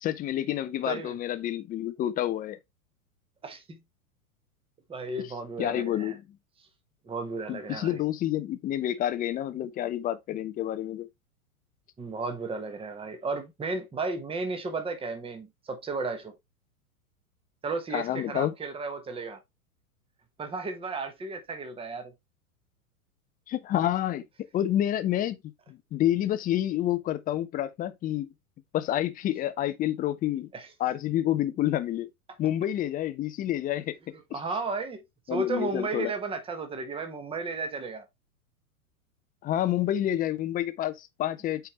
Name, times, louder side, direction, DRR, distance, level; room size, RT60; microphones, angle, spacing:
voice 1, 0.0-2.6 5.2-5.3 5.6-6.2 7.5-11.1 17.9-18.5 23.5-24.2 24.5-25.4 25.7-28.3 28.7-30.5 30.8-32.1 32.4-33.9 34.3-34.4 35.3-36.1 39.4-41.7, left 12 dB, 20° left, 0.6 m, -28 dB
voice 2, 3.4-3.8 4.9-6.1 7.0-8.0 12.0-16.3 17.6-19.4 20.4-22.1 30.5-30.7 34.3-35.0 35.3-38.0, right 3 dB, 10° right, 1.2 m, -34 dB
8.4 x 4.6 x 3.2 m
figure-of-eight pair, 100°, 44 cm